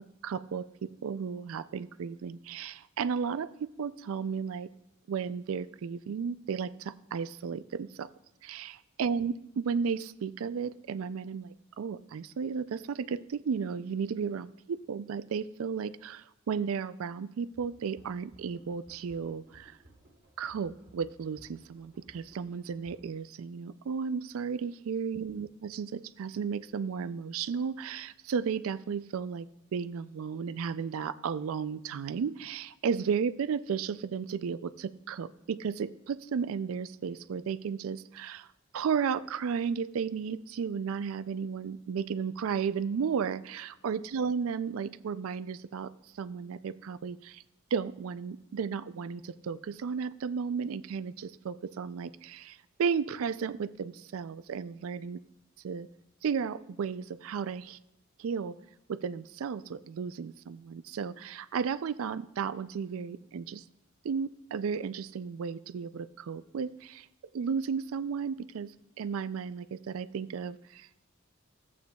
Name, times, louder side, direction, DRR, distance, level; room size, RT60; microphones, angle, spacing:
voice 1, 0.2-4.7 5.1-8.1 8.4-19.8 20.4-29.5 29.7-38.5 38.7-45.9 46.2-47.4 47.7-55.2 55.6-55.9 56.2-57.8 58.2-58.6 58.9-63.6 64.0-67.1 67.3-71.0, right 6 dB, 75° right, 15 dB, 0.4 m, -34 dB
sound 1, 17.5-23.1, right 1 dB, 45° right, 2.0 m, -59 dB
14.0 x 8.4 x 2.3 m, 0.88 s
head